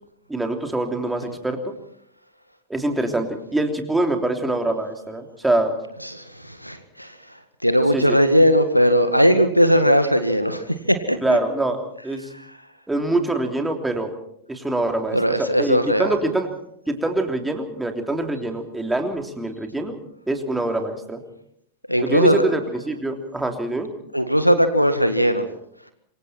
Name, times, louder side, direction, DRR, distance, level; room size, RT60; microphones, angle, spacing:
voice 1, 0.3-1.6 2.7-5.7 7.9-8.0 11.2-11.8 12.0-12.3 12.9-14.1 14.5-16.5 16.9-20.0 20.3-21.2 22.0-22.6 22.9-23.9, right 2 dB, 5° right, 4 dB, 3.3 m, -24 dB
voice 2, 6.0-7.1 7.6-11.2 15.1-16.1 21.9-22.4 24.1-25.4, equal, 90° right, 9 dB, 1.8 m, -18 dB
27.0 x 24.0 x 4.4 m, 0.69 s
figure-of-eight pair, 90°, 0 cm